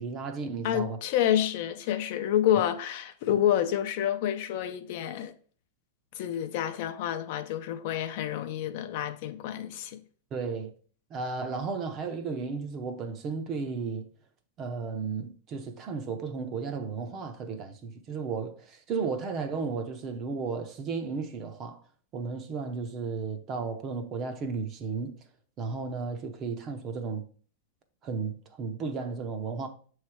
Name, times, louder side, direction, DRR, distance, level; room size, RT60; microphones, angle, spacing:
voice 1, 0.0-1.0 3.3-3.4 10.3-10.7 11.1-14.1 14.6-21.8 22.1-25.1 25.6-27.2 28.0-29.7, right 4 dB, 25° right, 0.7 m, -34 dB
voice 2, 0.6-5.3 6.1-10.0, left 11 dB, 50° left, 0.5 m, -28 dB
6.6 x 3.2 x 4.8 m
supercardioid pair, 160°, 0 cm